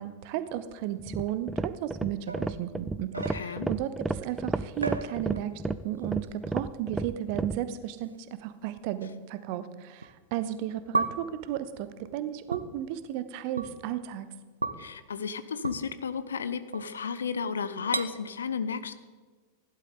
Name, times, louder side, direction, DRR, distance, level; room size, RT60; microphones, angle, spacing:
voice 1, 0.0-14.3, right 11 dB, 45° right, 13 dB, 0.8 m, -34 dB
sound 1, 1.0-7.6, right 2 dB, 5° right, 0.4 m, -33 dB
sound 2, 2.3-3.8 4.8-5.7 6.0-6.4 7.4-7.5 8.3-8.4 10.0-10.1 10.9-11.4 12.5-12.7 13.6-13.7 14.6-14.9 15.6-15.8 16.7-17.2 17.9-18.1, right 3 dB, 80° right, 0.6 m, -34 dB
voice 2, 3.1-3.7 14.8-18.9, left 6 dB, 70° left, 12 dB, 0.7 m, -33 dB
15.5 x 11.5 x 3.9 m, 1.4 s
figure-of-eight pair, 90°, 0 cm